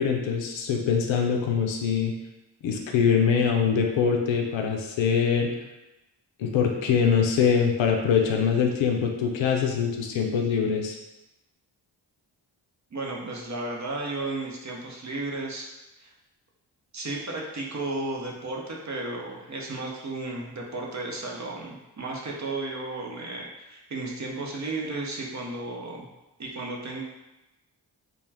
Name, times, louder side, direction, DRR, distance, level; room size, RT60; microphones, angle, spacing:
voice 1, 0.0-2.1 2.6-5.5 6.4-11.0, left 6 dB, 80° left, 2 dB, 0.5 m, -23 dB
voice 2, 12.9-15.7 16.0-16.1 16.9-26.1 26.4-27.0, right 2 dB, 40° right, -1 dB, 0.7 m, -34 dB
2.3 x 2.2 x 3.2 m, 0.99 s
supercardioid pair, 40°, 45 cm